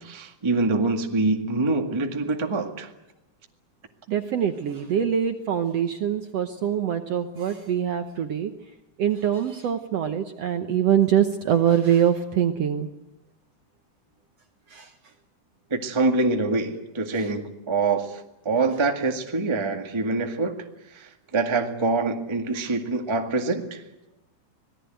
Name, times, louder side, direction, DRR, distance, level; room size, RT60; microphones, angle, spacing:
voice 1, 0.0-2.9 15.7-20.5 20.9-23.8, right 3 dB, 15° right, 4 dB, 1.0 m, -25 dB
voice 2, 4.1-8.5 9.0-12.9 14.7-14.9 17.1-17.3 22.6-22.7, right 9 dB, 65° right, 7 dB, 1.7 m, -24 dB
26.0 x 18.5 x 9.2 m, 0.96 s
omnidirectional pair, 3.9 m